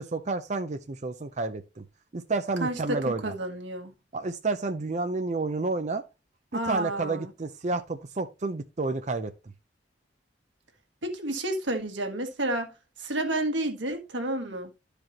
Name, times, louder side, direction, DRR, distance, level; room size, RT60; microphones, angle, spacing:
voice 1, 0.0-1.8 2.1-3.2 4.1-6.0 6.5-9.3, right 3 dB, 40° right, 0.6 m, -30 dB
voice 2, 2.6-3.9 6.5-7.3 11.0-12.7 13.0-14.7, right 1 dB, 90° right, 1.7 m, -30 dB
12.0 x 5.0 x 2.9 m
head